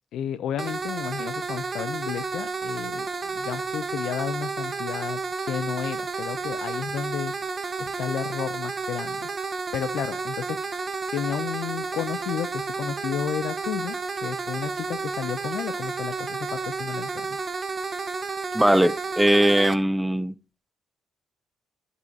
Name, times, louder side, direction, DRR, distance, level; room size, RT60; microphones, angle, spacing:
voice 1, 0.1-7.3 7.8-9.3 9.7-10.6 11.1-17.4, left 9 dB, 75° left, 0.4 m, -32 dB
sound 1, 0.6-19.8, right 4 dB, 35° right, 0.8 m, -31 dB
voice 2, 18.5-20.3, right 1 dB, 5° right, 0.4 m, -20 dB
15.0 x 5.4 x 2.7 m
cardioid pair, 90°, 0 cm